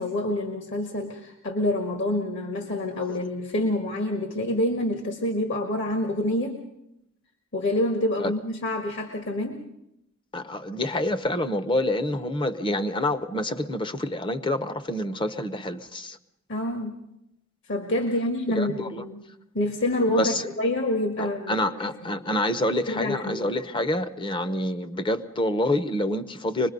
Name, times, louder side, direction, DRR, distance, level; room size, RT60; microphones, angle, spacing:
voice 1, 0.0-6.6 7.5-9.6 16.5-17.0 17.7-19.2 19.5-22.1 22.9-23.6, left 1 dB, 60° left, 1.6 m, -27 dB
voice 2, 10.3-16.2 18.5-19.0 20.1-20.5 21.2-26.7, left 1 dB, 25° left, 0.8 m, -27 dB
24.5 x 21.0 x 5.3 m
head